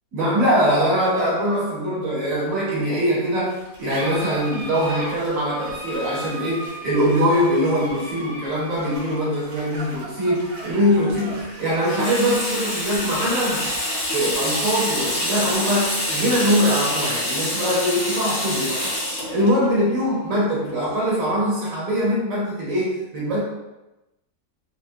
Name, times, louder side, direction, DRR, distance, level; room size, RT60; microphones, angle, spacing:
voice 1, 0.1-13.7 14.1-19.0 19.3-23.4, equal, 60° right, -6 dB, 1.3 m, -22 dB
sound 1, 3.4-20.4, right 1 dB, 90° right, 1.2 m, -38 dB
Water tap faucet / Sink (filling or washing), 11.8-21.1, left 1 dB, 50° left, 0.8 m, -27 dB
3.7 x 2.0 x 2.5 m, 0.98 s
omnidirectional pair, 1.6 m